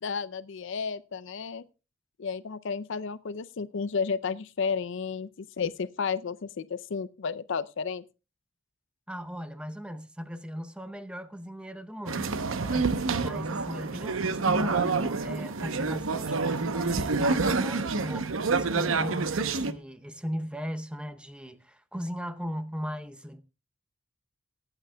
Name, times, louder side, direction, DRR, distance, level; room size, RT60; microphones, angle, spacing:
voice 1, 0.0-1.7 2.2-8.0, left 5 dB, 65° left, 0.5 m, -32 dB
voice 2, 9.1-23.4, equal, 5° right, 0.7 m, -38 dB
sound 1, 12.1-19.7, right 4 dB, 80° right, 0.8 m, -28 dB
23.5 x 8.9 x 2.2 m
head